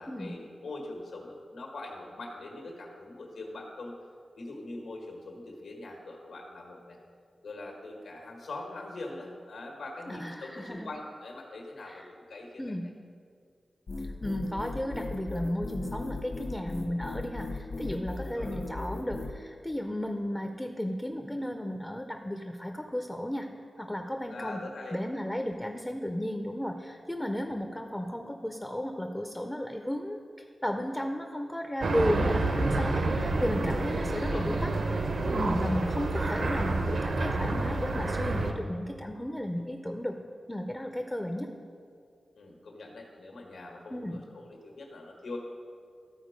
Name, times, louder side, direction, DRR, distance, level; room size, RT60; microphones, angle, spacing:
voice 1, 0.0-3.9 4.4-7.0 7.4-12.6 17.8-18.5 24.3-25.0 34.2-34.5 42.3-45.4, left 2 dB, 80° left, 1 dB, 1.6 m, -42 dB
voice 2, 10.1-10.9 11.8-12.1 12.6-12.9 14.0-23.5 23.8-24.6 24.9-34.7 35.3-40.2 40.5-41.5 43.9-44.2, equal, 10° left, 4 dB, 0.5 m, -34 dB
sound 1, 13.9-19.3, left 3 dB, 55° left, 1.0 m, -37 dB
sound 2, 31.8-38.5, right 2 dB, 65° right, 0.8 m, -28 dB
13.5 x 4.5 x 5.1 m, 2.2 s
wide cardioid pair, 150°, 0 cm